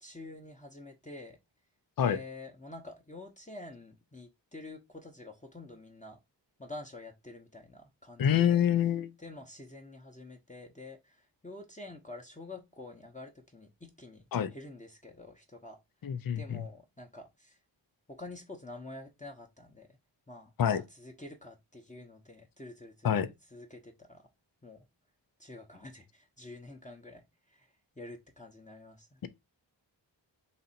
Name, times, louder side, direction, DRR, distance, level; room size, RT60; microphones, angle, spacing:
voice 1, 0.0-1.4 2.0-6.2 6.6-8.6 9.2-14.2 14.5-15.8 16.4-17.6 18.1-19.9 20.3-23.2 23.5-24.2 24.6-24.8 25.4-27.2 27.5-27.7 28.0-29.2, left 2 dB, 15° left, 0.9 m, -48 dB
voice 2, 8.2-9.1 14.3-14.5 16.0-16.6 20.6-20.8 23.0-23.3, left 9 dB, 50° left, 0.6 m, -26 dB
4.1 x 2.7 x 4.1 m
wide cardioid pair, 65°, 44 cm